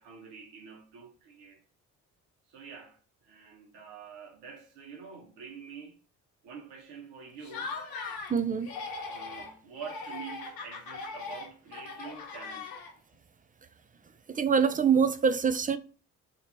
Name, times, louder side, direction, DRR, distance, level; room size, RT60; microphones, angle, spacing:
voice 1, 0.0-1.6 2.5-6.0 6.4-7.7 9.1-12.7, right 6 dB, 75° right, 1.4 m, -46 dB
Laughter, 7.4-8.4 8.6-9.5 9.8-13.1, left 4 dB, 60° left, 1.3 m, -40 dB
voice 2, 8.3-8.7 14.3-15.8, right 6 dB, 20° right, 0.5 m, -25 dB
3.6 x 2.8 x 4.3 m
hypercardioid pair, 45°, 41 cm